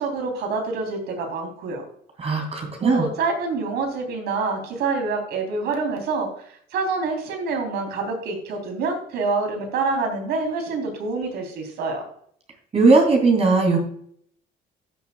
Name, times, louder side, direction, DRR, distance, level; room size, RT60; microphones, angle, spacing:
voice 1, 0.0-1.8 2.8-12.0, right 4 dB, 75° right, 3 dB, 3.5 m, -26 dB
voice 2, 2.2-3.0 12.7-13.8, right 3 dB, 40° right, 1 dB, 3.0 m, -18 dB
15.0 x 7.0 x 2.3 m, 0.64 s
cardioid pair, 110°, 17 cm